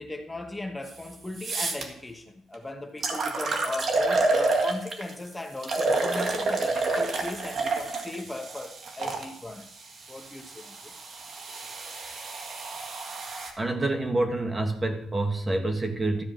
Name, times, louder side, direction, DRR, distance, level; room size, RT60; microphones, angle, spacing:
voice 1, 0.0-9.7 10.1-11.0, left 2 dB, 15° left, 1.1 m, -37 dB
sound 1, 0.9-1.0 1.4-1.8 2.5-2.6 3.0-5.1 5.6-9.2 10.1-13.5, right 3 dB, 50° right, 1.9 m, -29 dB
voice 2, 13.6-16.2, right 2 dB, 25° right, 1.7 m, -27 dB
13.5 x 4.8 x 7.6 m
cardioid pair, 90°, 0 cm